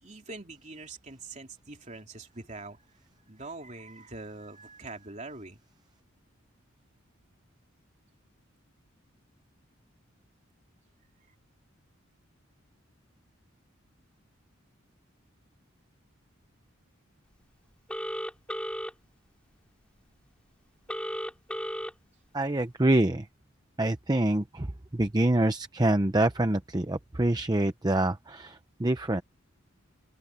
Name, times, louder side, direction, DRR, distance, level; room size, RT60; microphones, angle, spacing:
voice 1, 0.0-2.8 3.3-5.6, right 3 dB, 35° right, 3.2 m, -43 dB
Telephone, 17.9-18.9 20.9-21.9, equal, 5° left, 5.2 m, -34 dB
voice 2, 22.3-23.3 23.8-24.7 24.9-29.2, right 1 dB, 20° right, 0.7 m, -26 dB
open air
head